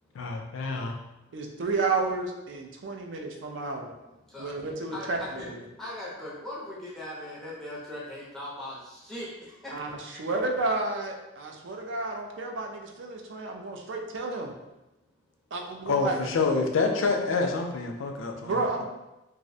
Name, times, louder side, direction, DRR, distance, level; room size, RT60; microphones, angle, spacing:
voice 1, 0.1-1.0 15.9-18.9, left 4 dB, 75° left, 3 dB, 0.3 m, -27 dB
voice 2, 1.3-3.9 4.4-5.6 9.7-14.5 15.5-16.2 18.4-18.9, right 3 dB, 65° right, 2 dB, 0.3 m, -31 dB
voice 3, 4.9-5.5 5.8-9.3 9.6-9.7 10.1-10.4, left 1 dB, ahead, -7 dB, 0.5 m, -39 dB
2.4 x 2.0 x 2.6 m, 0.97 s
head